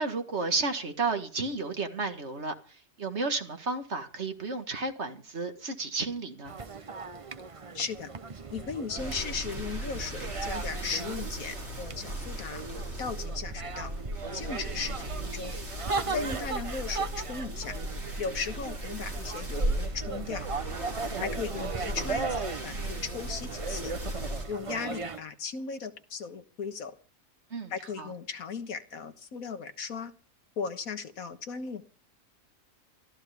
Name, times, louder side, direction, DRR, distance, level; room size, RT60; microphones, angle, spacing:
voice 1, 0.0-6.6 20.9-21.3 27.5-27.7 28.0-28.1, right 3 dB, 55° right, 2.0 m, -32 dB
sound 1, 6.4-25.2, right 4 dB, 30° right, 0.7 m, -38 dB
voice 2, 7.7-8.1 8.5-12.6 13.0-13.9 14.3-15.5 16.1-17.8 18.2-20.5 21.2-23.9 24.5-27.0 27.7-30.1 30.6-31.8, left 5 dB, 90° left, 1.8 m, -37 dB
sound 2, 9.0-24.4, right 1 dB, 70° right, 5.1 m, -36 dB
23.0 x 14.5 x 3.5 m
omnidirectional pair, 1.4 m